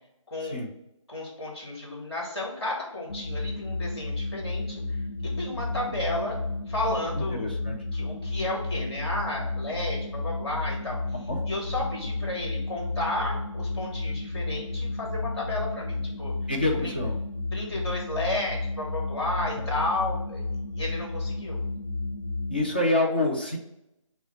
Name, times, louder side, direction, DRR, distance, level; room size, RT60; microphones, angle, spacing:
voice 1, 0.3-0.6 1.1-6.4 6.7-7.6 7.9-11.0 11.5-16.3 16.8-16.9 17.5-20.4 20.8-21.6, left 2 dB, 50° left, -1 dB, 1.7 m, -32 dB
sound 1, 3.1-22.6, left 2 dB, 85° left, 0.8 m, -32 dB
voice 2, 7.1-7.8 11.3-11.4 16.5-17.2 22.5-23.6, left 2 dB, 20° left, 0 dB, 0.4 m, -27 dB
5.6 x 2.1 x 4.4 m, 0.84 s
figure-of-eight pair, 155°, 17 cm